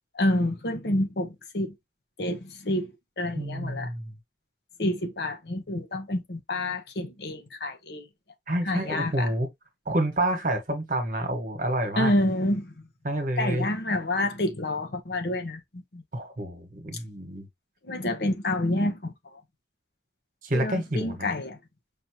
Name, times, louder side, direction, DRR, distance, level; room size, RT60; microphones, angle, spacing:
voice 1, 0.1-1.7 2.2-3.9 4.8-8.1 8.6-9.3 12.0-12.9 13.4-16.0 17.8-19.4 20.5-21.6, left 1 dB, 75° left, 1.0 m, -28 dB
voice 2, 3.3-4.1 8.5-9.5 9.8-12.1 13.0-13.7 16.1-17.5 20.4-21.3, right 1 dB, 50° right, 1.3 m, -28 dB
5.3 x 2.8 x 2.9 m
head